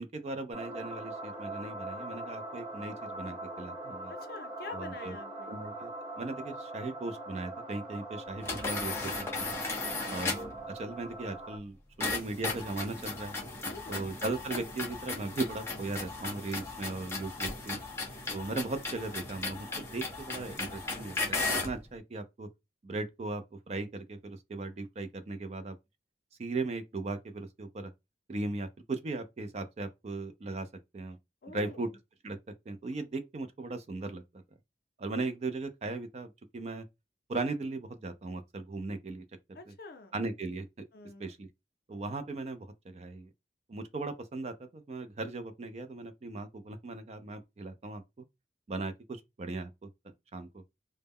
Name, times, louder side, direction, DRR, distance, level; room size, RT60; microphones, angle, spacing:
voice 1, 0.0-4.1 4.7-5.2 5.5-9.5 10.1-13.4 13.9-17.8 18.3-22.5 22.8-25.8 26.4-27.9 28.3-30.7 30.9-31.2 31.5-31.9 32.2-32.4 32.7-34.2 35.0-36.9 37.3-39.2 39.7-39.8 40.1-40.8 41.2-41.5 41.9-43.3 43.7-48.2 48.7-49.9 50.3-50.6, right 3 dB, 35° right, 0.3 m, -38 dB
sound 1, 0.5-11.6, right 2 dB, 15° right, 0.8 m, -42 dB
voice 2, 4.1-5.5 9.7-10.2 13.7-14.1 31.4-32.0 39.5-40.2 40.9-41.3, left 3 dB, 55° left, 0.5 m, -47 dB
sound 2, 8.4-10.6 12.0-21.8, left 3 dB, 15° left, 0.6 m, -36 dB
2.1 x 2.0 x 3.4 m
head